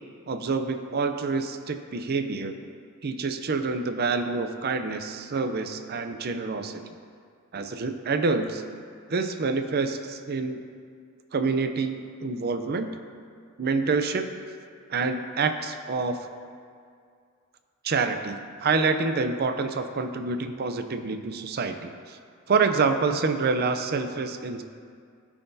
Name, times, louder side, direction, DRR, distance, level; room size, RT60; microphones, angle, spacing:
voice 1, 0.3-2.6 3.0-6.8 7.5-8.6 9.1-10.6 11.3-12.9 13.6-14.3 14.9-16.2 17.8-22.2 22.5-24.6, right 4 dB, 45° right, 7 dB, 0.5 m, -27 dB
16.5 x 5.8 x 2.7 m, 2.2 s
head